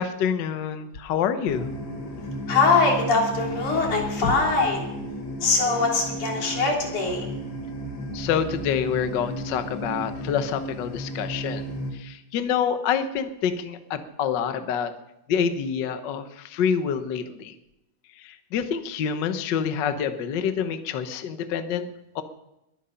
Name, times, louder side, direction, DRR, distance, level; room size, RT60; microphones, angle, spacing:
voice 1, 0.0-1.7 8.1-11.7 11.9-14.9 15.3-17.5 18.2-21.9 22.1-22.2, left 7 dB, 60° left, 9 dB, 1.2 m, -27 dB
sound 1, 1.4-11.9, right 1 dB, 45° left, 2.2 m, -34 dB
voice 2, 2.5-4.8 5.4-7.3, left 4 dB, 90° left, 0 dB, 4.7 m, -22 dB
21.5 x 9.2 x 5.7 m, 0.89 s
omnidirectional pair, 3.4 m